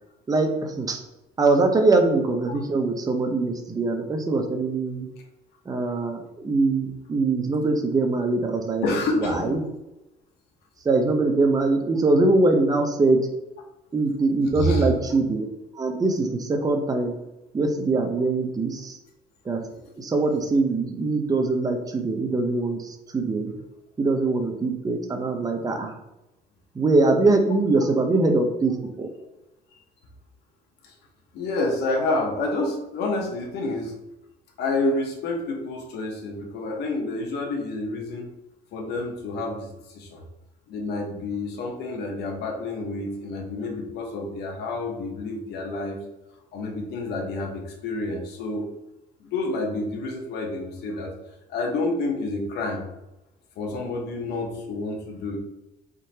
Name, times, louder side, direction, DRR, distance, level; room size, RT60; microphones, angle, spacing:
voice 1, 0.3-1.0 1.4-5.1 5.7-8.8 9.2-9.6 10.8-13.2 13.9-15.5 15.8-17.1 17.5-19.0 19.5-19.6 20.0-23.5 24.0-25.9 26.8-29.1, right 3 dB, 20° right, 4 dB, 0.7 m, -22 dB
voice 2, 8.8-9.5 14.5-14.9 30.8-30.9 31.3-33.9 34.6-38.3 38.7-40.2 40.7-46.0 46.5-48.7 49.2-51.1 51.5-52.8 53.6-55.4, left 2 dB, 75° left, 1 dB, 0.9 m, -28 dB
4.2 x 3.7 x 2.8 m, 0.93 s
cardioid pair, 110°, 17 cm